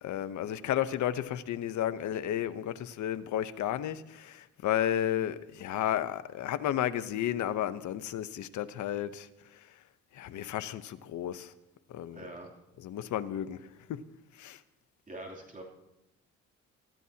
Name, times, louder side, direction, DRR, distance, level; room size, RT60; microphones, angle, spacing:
voice 1, 0.0-9.3 10.1-11.5 11.9-12.3 12.8-13.6 13.9-14.0 14.4-14.6, left 11 dB, 75° left, 0.9 m, -32 dB
voice 2, 12.1-12.5 15.1-15.6, right 1 dB, 25° right, 3.1 m, -44 dB
24.0 x 14.0 x 2.9 m
cardioid pair, 90°, 30 cm